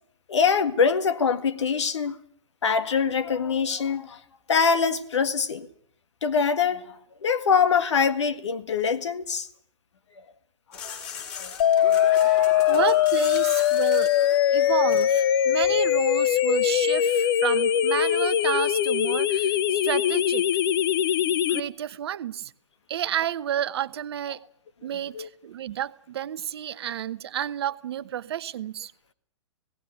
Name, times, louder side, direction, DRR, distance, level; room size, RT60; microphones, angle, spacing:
voice 1, 0.3-2.2 2.6-4.2 4.5-5.7 6.2-6.8 7.2-9.5 10.8-11.0 11.4-11.5 12.5-12.7 25.1-25.3, left 6 dB, 65° left, 1.8 m, -24 dB
sound 1, 10.7-15.8, left 5 dB, 35° left, 6.4 m, -37 dB
sound 2, 11.6-21.6, left 10 dB, 50° left, 0.9 m, -22 dB
voice 2, 12.1-14.1 14.5-20.4 21.5-22.5 22.9-24.4 24.8-28.9, right 10 dB, 55° right, 1.0 m, -31 dB
18.0 x 17.0 x 9.4 m
figure-of-eight pair, 110°, 16 cm